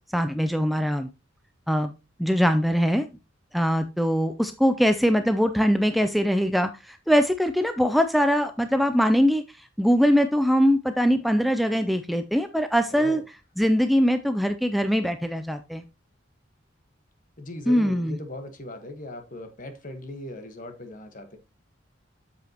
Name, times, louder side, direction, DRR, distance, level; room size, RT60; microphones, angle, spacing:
voice 1, 0.1-1.1 1.7-1.9 2.2-3.1 3.5-9.4 9.8-13.2 13.6-15.8 17.7-18.2, equal, ahead, 0.4 m, -22 dB
voice 2, 12.9-13.2 17.4-21.4, left 2 dB, 45° left, 1.3 m, -39 dB
7.9 x 7.0 x 2.9 m
head